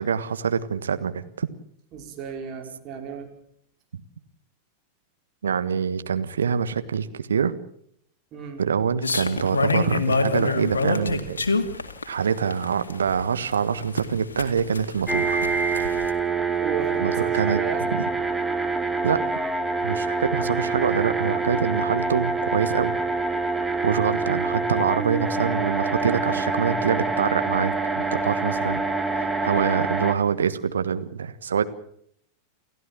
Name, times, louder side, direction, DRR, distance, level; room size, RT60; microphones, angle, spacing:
voice 1, 0.0-1.5 5.4-7.5 8.6-11.4 12.1-15.5 17.0-17.6 17.9-18.0 19.0-19.2 19.8-22.9 23.8-28.8 29.1-31.6, right 7 dB, 70° right, 11 dB, 1.5 m, -25 dB
voice 2, 1.9-3.3 8.3-8.6 16.6-17.9 24.1-24.4, right 7 dB, 35° right, 3 dB, 5.0 m, -34 dB
sound 1, 9.0-16.1, left 3 dB, 75° left, 2.1 m, -26 dB
sound 2, 15.1-30.1, right 4 dB, 10° right, 2.1 m, -26 dB
29.5 x 15.0 x 7.3 m, 0.68 s
figure-of-eight pair, 90°, 0 cm